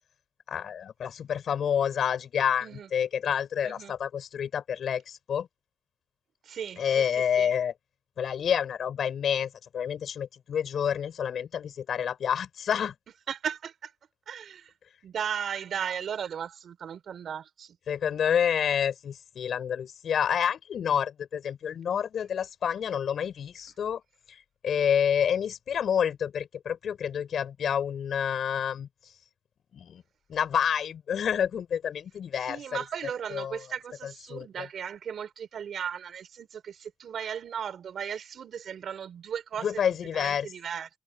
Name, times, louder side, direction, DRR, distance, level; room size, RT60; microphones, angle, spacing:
voice 1, 0.5-5.5 6.8-7.7 8.2-12.9 17.9-24.0 24.3-24.4 24.6-28.9 29.7-30.0 30.3-32.8 33.3-33.6 34.0-34.7 39.6-40.5, left 8 dB, 75° left, 5.3 m, -28 dB
voice 2, 3.6-3.9 6.4-7.5 13.3-13.9 14.3-14.7 15.0-17.8 32.4-39.7 40.1-40.9, right 8 dB, 75° right, 4.2 m, -36 dB
cardioid pair, 95°, 0 cm